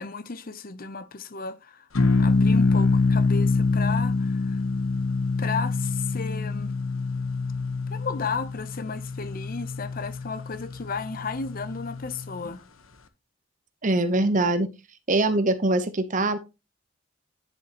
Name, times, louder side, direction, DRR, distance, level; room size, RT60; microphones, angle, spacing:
voice 1, 0.0-1.9 2.2-4.6 5.4-6.7 7.9-12.6, left 4 dB, 45° left, 0.7 m, -34 dB
sound 1, 1.9-12.5, left 3 dB, 85° left, 1.0 m, -25 dB
voice 2, 13.8-14.7 15.1-16.4, right 2 dB, 40° right, 0.8 m, -23 dB
10.0 x 7.2 x 2.9 m
head